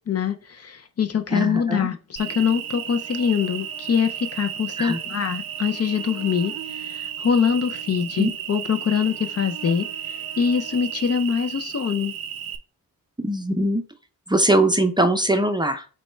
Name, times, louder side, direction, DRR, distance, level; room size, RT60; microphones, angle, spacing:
voice 1, 0.1-9.9 10.4-12.1, left 7 dB, 45° left, 8 dB, 0.5 m, -24 dB
voice 2, 1.3-1.9 4.8-5.0 8.2-8.3 13.2-13.8 14.3-15.9, right 1 dB, 15° right, 6 dB, 0.5 m, -21 dB
Cricket, 2.2-12.6, right 9 dB, 80° right, 0.5 m, -33 dB
5.3 x 2.2 x 4.3 m, 0.36 s
cardioid pair, 90°, 35 cm